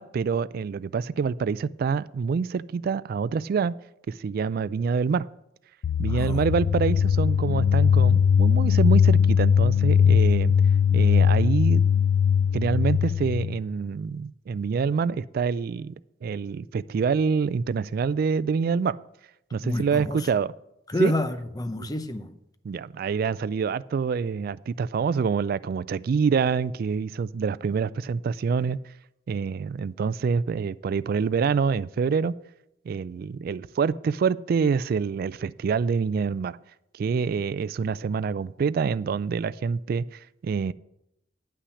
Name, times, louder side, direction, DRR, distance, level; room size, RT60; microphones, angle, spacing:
voice 1, 0.0-3.8 4.1-5.3 6.0-10.5 10.9-11.9 12.5-15.9 16.2-19.0 19.5-20.5 21.0-21.1 21.8-21.9 22.6-28.8 29.3-32.3 32.9-36.6 36.9-40.7, right 5 dB, 55° right, 0.3 m, -26 dB
sound 1, 5.8-13.6, left 7 dB, 75° left, 0.3 m, -20 dB
voice 2, 6.1-6.4 19.6-20.3 20.9-22.4, left 1 dB, 20° left, 0.6 m, -29 dB
9.8 x 5.8 x 7.0 m
head